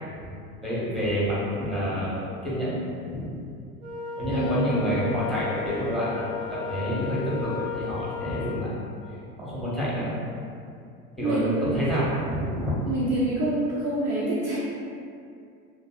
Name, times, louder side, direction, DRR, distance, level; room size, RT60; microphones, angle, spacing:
voice 1, 0.6-3.3 4.2-8.7 9.4-10.1 11.2-12.7, equal, ahead, -9 dB, 0.8 m, -28 dB
Wind instrument woodwind instrument, 3.8-8.7, left 8 dB, 80° right, 0.7 m, -35 dB
voice 2, 4.3-4.7 11.2-11.7 12.8-14.6, right 1 dB, 25° right, -7 dB, 0.4 m, -26 dB
2.6 x 2.5 x 2.3 m, 2.4 s
figure-of-eight pair, 80°, 45 cm